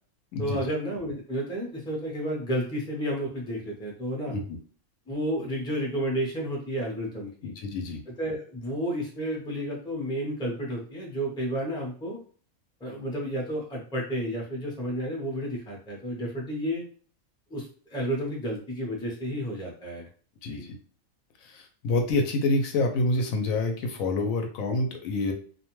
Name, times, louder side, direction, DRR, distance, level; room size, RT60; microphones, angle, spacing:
voice 1, 0.4-4.3 5.1-7.5 8.1-12.2 12.8-16.8 17.5-20.1 20.5-20.7, equal, 5° left, -2 dB, 0.5 m, -31 dB
voice 2, 7.4-8.0 20.4-20.6 21.4-25.3, left 2 dB, 75° left, 5 dB, 0.9 m, -27 dB
2.5 x 2.2 x 3.0 m, 0.44 s
omnidirectional pair, 1.5 m